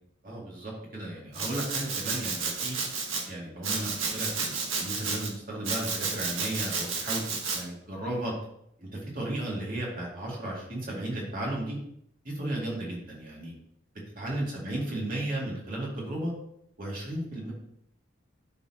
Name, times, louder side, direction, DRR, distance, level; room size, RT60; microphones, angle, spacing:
voice 1, 0.2-2.8 3.3-8.3 8.8-11.8 12.2-13.5 14.2-16.3 16.8-17.5, right 1 dB, 45° right, -4 dB, 2.4 m, -34 dB
Domestic sounds home sounds, 1.3-3.2 3.6-5.3 5.6-7.6, right 4 dB, 80° right, 1.4 m, -31 dB
12.0 x 4.4 x 2.9 m, 0.73 s
head